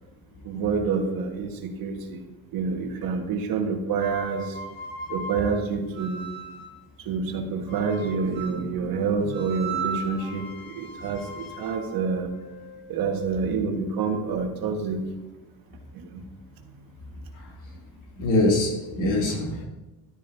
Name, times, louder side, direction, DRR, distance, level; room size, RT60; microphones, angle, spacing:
voice 1, 0.4-2.2 2.5-4.6 5.1-6.3 7.0-12.3 12.9-15.0 15.9-16.2 16.6-16.7, right 5 dB, 60° right, 3 dB, 1.7 m, -28 dB
sound 1, 3.9-6.8 7.7-8.7 9.3-13.3, right 4 dB, 70° left, 2.6 m, -37 dB
voice 2, 18.2-19.7, left 2 dB, 50° left, -1 dB, 2.9 m, -23 dB
12.0 x 10.5 x 2.8 m, 1.1 s
cardioid pair, 115°, 39 cm